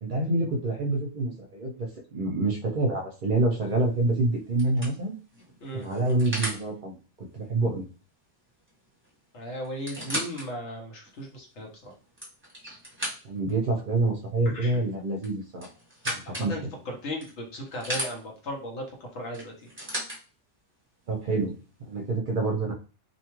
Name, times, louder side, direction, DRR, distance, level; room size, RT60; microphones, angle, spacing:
voice 1, 0.0-1.7 2.1-5.1 5.7-7.8 13.2-15.7 16.0-16.7 21.1-21.6 21.8-22.7, right 2 dB, 50° right, 0 dB, 0.7 m, -27 dB
sound 1, 3.7-4.0 4.6-6.6 8.7-8.8 9.0-9.1 9.6-10.5 11.1-11.2 11.9-13.5 15.2-16.5 17.2-18.1 19.3-20.2 21.1-21.2, equal, 10° right, 1.1 m, -35 dB
voice 2, 9.3-11.9 14.5-14.8 16.2-19.5, left 1 dB, 75° left, 0 dB, 1.2 m, -36 dB
2.8 x 2.3 x 2.9 m, 0.35 s
omnidirectional pair, 1.2 m